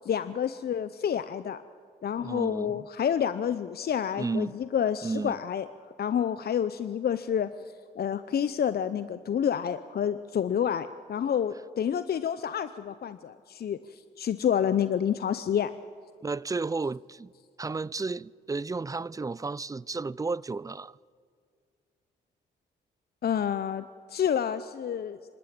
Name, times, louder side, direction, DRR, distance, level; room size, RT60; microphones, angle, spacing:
voice 1, 0.1-1.6 2.0-5.7 6.0-7.5 8.0-15.7 23.2-25.2, left 8 dB, 55° left, 0.7 m, -29 dB
voice 2, 2.2-2.9 4.2-4.6 5.0-5.4 16.2-17.3 17.6-21.0, right 3 dB, 20° right, 0.4 m, -33 dB
26.0 x 12.5 x 8.7 m
supercardioid pair, 55°, 20 cm